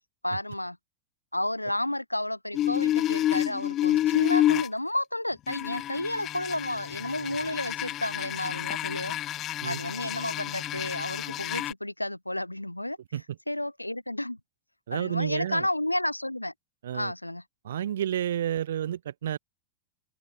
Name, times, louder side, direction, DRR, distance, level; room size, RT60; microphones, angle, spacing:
voice 1, 0.2-0.8 1.3-9.2 9.6-13.0 13.5-14.4 14.9-16.5 16.9-17.4, left 1 dB, 85° left, 0.6 m, -31 dB
sound 1, 2.5-4.7 5.5-11.7, left 13 dB, 30° left, 0.4 m, -29 dB
voice 2, 14.9-15.7 16.8-17.1 17.6-19.4, right 10 dB, 60° right, 0.4 m, -30 dB
open air
figure-of-eight pair, 90°, 0 cm